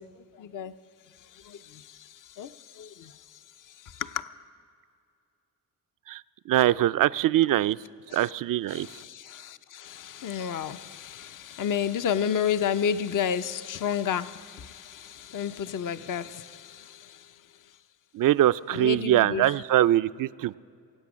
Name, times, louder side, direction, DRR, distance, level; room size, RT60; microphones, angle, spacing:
voice 1, 0.2-0.7 1.3-3.2 3.8-4.3 8.1-8.3 8.7-17.3 18.7-19.6, left 8 dB, 50° left, 11 dB, 0.7 m, -32 dB
voice 2, 6.5-7.8 8.1-8.9 18.1-20.6, right 13 dB, 55° right, 15 dB, 0.4 m, -23 dB
23.0 x 8.1 x 6.2 m, 2.4 s
supercardioid pair, 50°, 41 cm